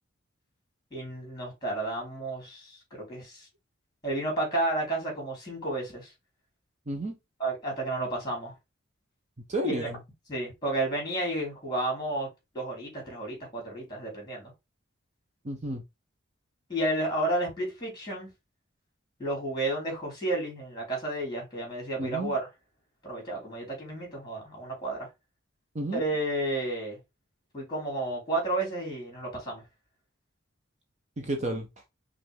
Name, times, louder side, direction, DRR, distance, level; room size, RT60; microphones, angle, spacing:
voice 1, 0.9-3.5 4.0-6.1 7.4-8.5 9.6-9.9 10.3-12.3 12.5-14.5 16.7-18.3 19.2-22.5 23.0-25.1 25.9-27.0 27.5-29.6, right 2 dB, 20° left, 2.9 m, -31 dB
voice 2, 6.9-7.2 9.5-10.0 15.4-15.8 22.0-22.3 25.7-26.0 31.2-31.7, right 1 dB, 35° right, 0.8 m, -31 dB
5.6 x 2.6 x 3.5 m
head